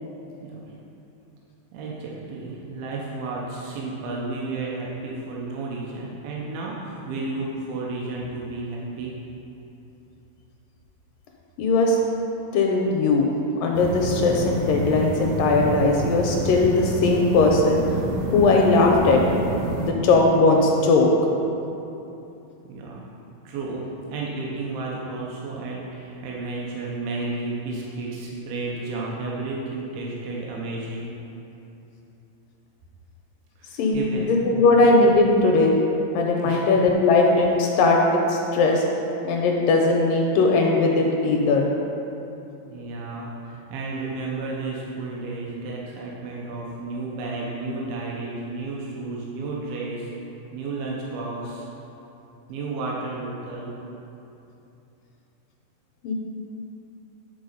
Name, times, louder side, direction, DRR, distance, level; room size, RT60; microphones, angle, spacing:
voice 1, 1.7-9.1 22.6-23.0 23.5-31.1 33.6-34.2 34.6-34.8 36.4-36.6 42.7-50.1 50.5-51.7 52.5-53.8, right 3 dB, 90° right, -4 dB, 2.6 m, -32 dB
voice 2, 11.6-12.0 12.5-13.3 13.6-17.8 18.3-19.2 19.8-21.1 33.8-35.8 36.1-38.9 39.2-41.7 56.0-56.1, left 3 dB, 80° left, 0 dB, 2.1 m, -19 dB
sound 1, 13.7-19.9, right 2 dB, 70° right, 1.9 m, -28 dB
10.0 x 4.0 x 5.4 m, 2.9 s
omnidirectional pair, 4.3 m